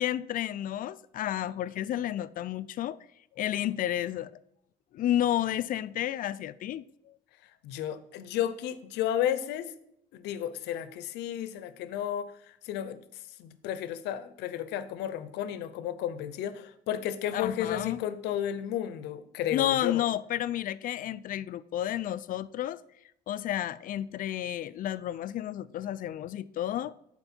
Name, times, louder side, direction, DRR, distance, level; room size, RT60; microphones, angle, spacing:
voice 1, 0.0-3.0 3.4-4.3 4.9-7.1 17.3-18.0 19.5-22.8 23.3-26.9, left 12 dB, 55° left, 0.4 m, -31 dB
voice 2, 7.4-9.7 10.1-20.0, left 10 dB, 85° left, 0.7 m, -33 dB
11.0 x 4.4 x 4.4 m
cardioid pair, 110°, 17 cm